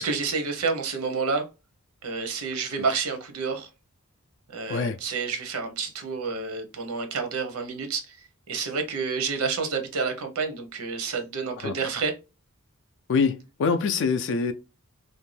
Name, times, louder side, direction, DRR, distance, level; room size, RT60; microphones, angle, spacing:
voice 1, 0.0-1.4 2.0-3.7 4.5-8.2 8.5-12.1, right 4 dB, 90° right, 0.7 m, -29 dB
voice 2, 13.1-14.5, left 5 dB, 60° left, 0.3 m, -24 dB
2.6 x 2.1 x 3.1 m
head